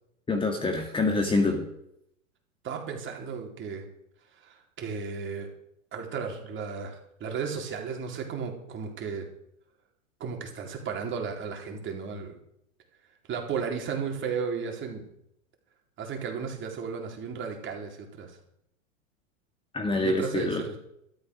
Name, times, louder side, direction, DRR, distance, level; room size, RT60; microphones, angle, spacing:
voice 1, 0.3-1.7 19.7-20.6, left 3 dB, 15° left, 3 dB, 2.2 m, -26 dB
voice 2, 2.6-3.8 4.3-5.5 5.9-9.3 10.2-12.3 13.3-15.0 16.0-18.4 20.0-20.8, right 6 dB, 30° right, 2 dB, 4.1 m, -34 dB
13.0 x 12.5 x 6.4 m, 0.76 s
hypercardioid pair, 120°, 40 cm